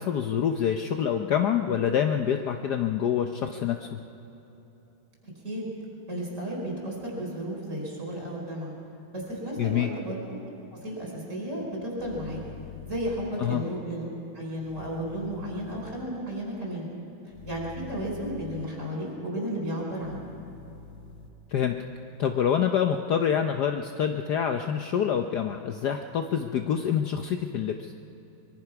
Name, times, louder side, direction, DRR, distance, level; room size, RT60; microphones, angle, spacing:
voice 1, 0.0-4.0 9.6-9.9 13.4-13.6 21.5-21.8 22.2-27.9, left 8 dB, 65° left, 6 dB, 1.2 m, -26 dB
voice 2, 6.1-8.7 9.1-10.4 10.7-12.4 12.9-14.1 14.3-16.9 17.5-20.2, right 1 dB, 35° right, -2 dB, 5.6 m, -33 dB
sound 1, 12.0-13.3 14.6-16.0 17.3-18.6 20.0-21.3, left 9 dB, 45° left, 0.9 m, -46 dB
24.0 x 22.0 x 5.9 m, 3.0 s
omnidirectional pair, 2.2 m